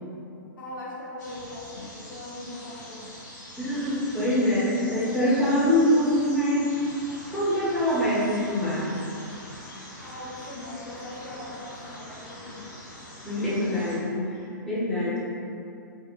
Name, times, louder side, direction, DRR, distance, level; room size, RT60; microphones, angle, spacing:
voice 1, 0.6-3.1 10.0-12.7, left 1 dB, 90° left, -7 dB, 0.8 m, -40 dB
sound 1, 1.2-14.0, left 1 dB, 65° left, 0.9 m, -44 dB
voice 2, 3.6-6.7 7.3-8.9 13.2-15.2, left 1 dB, 5° left, -9 dB, 0.6 m, -24 dB
2.6 x 2.4 x 2.7 m, 2.6 s
hypercardioid pair, 140°, 11 cm